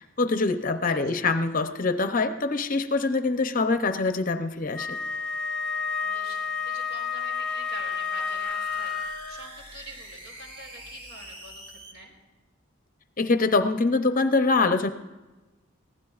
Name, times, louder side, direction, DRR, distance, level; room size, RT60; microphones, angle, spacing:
voice 1, 0.0-5.0 13.2-14.9, left 3 dB, 40° left, 9 dB, 0.6 m, -24 dB
Wind instrument woodwind instrument, 4.7-9.4, left 5 dB, 5° left, 0.9 m, -30 dB
voice 2, 6.0-12.1, right 1 dB, 70° right, 1 dB, 4.0 m, -45 dB
sound 1, 6.5-11.9, equal, 25° right, 2.1 m, -46 dB
22.5 x 15.5 x 2.4 m, 1.1 s
head